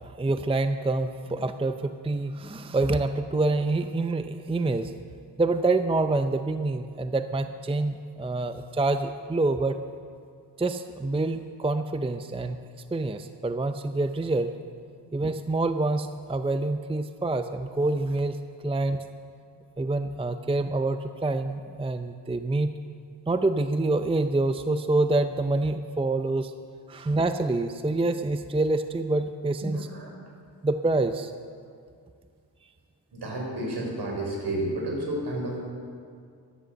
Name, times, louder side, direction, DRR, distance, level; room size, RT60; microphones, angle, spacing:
voice 1, 0.0-4.9 5.4-9.8 10.6-12.6 12.9-14.5 15.1-18.4 18.6-19.1 19.8-22.7 23.3-26.5 26.9-29.9 30.6-31.3, right 2 dB, 15° right, 9 dB, 0.6 m, -26 dB
voice 2, 29.6-30.1 33.1-35.6, right 1 dB, 65° right, -1 dB, 4.5 m, -31 dB
13.5 x 11.5 x 6.5 m, 2.2 s
cardioid pair, 65°, 43 cm